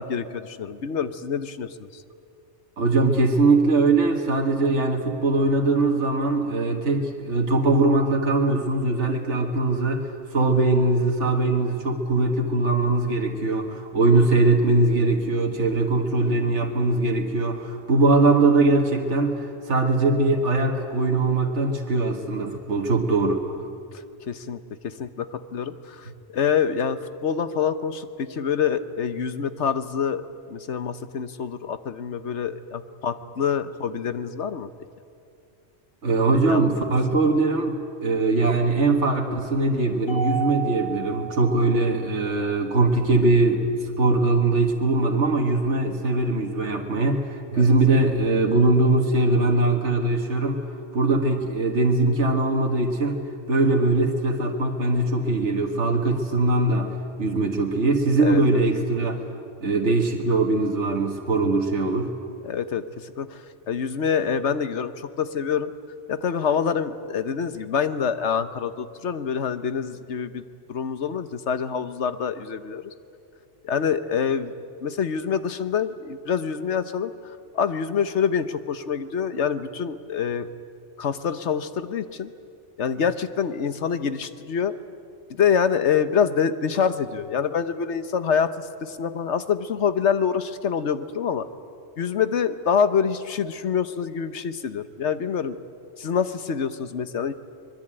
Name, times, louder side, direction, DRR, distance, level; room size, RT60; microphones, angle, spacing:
voice 1, 0.0-2.0 24.3-30.2 30.5-34.7 36.3-36.9 47.5-47.7 58.2-58.6 62.4-65.7 66.1-70.4 70.7-72.9 73.6-74.5 74.8-80.5 81.0-82.3 82.8-84.7 85.3-91.5 92.0-95.6 96.0-97.3, left 7 dB, 80° left, 12 dB, 1.3 m, -26 dB
voice 2, 2.8-23.4 36.0-50.6 50.9-53.2 53.5-56.9 57.2-59.2 59.6-62.1, right 2 dB, 80° right, 2 dB, 1.9 m, -21 dB
Mallet percussion, 40.1-42.5, right 7 dB, 50° left, 6.5 m, -33 dB
25.0 x 21.5 x 8.9 m, 2.4 s
omnidirectional pair, 1.2 m